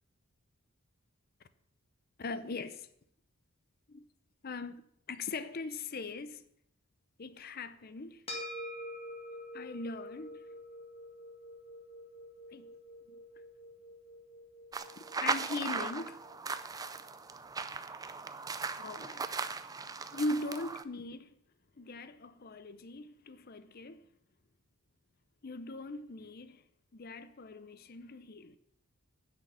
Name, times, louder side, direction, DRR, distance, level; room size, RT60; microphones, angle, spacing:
voice 1, 2.2-2.9 3.9-4.0 4.4-4.8 5.1-6.4 7.2-8.2 9.5-10.5 12.5-12.7 13.1-13.2 15.0-16.2 18.8-19.3 20.1-21.3 21.8-24.1 25.4-26.6 26.9-28.6, left 2 dB, 40° left, 0.6 m, -40 dB
sound 1, 8.3-16.9, left 1 dB, 25° left, 2.2 m, -47 dB
sound 2, 14.7-20.8, right 4 dB, 15° right, 0.4 m, -38 dB
10.0 x 6.3 x 8.3 m
head